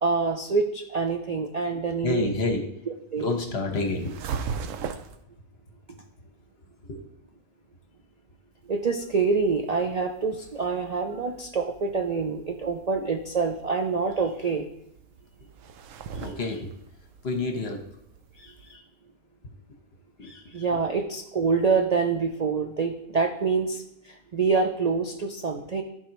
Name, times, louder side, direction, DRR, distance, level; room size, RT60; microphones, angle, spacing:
voice 1, 0.0-2.3 3.1-3.2 8.7-14.7 18.4-18.8 20.2-25.8, right 4 dB, 50° right, 3 dB, 0.5 m, -26 dB
voice 2, 2.0-2.7 3.2-4.1 6.8-7.0 16.1-16.7 17.2-17.8 20.2-20.3, left 3 dB, 50° left, 3 dB, 1.3 m, -28 dB
sound 1, 3.9-5.2 8.7-18.8, right 6 dB, 70° right, 0.9 m, -40 dB
13.5 x 4.7 x 3.0 m, 0.77 s
omnidirectional pair, 1.4 m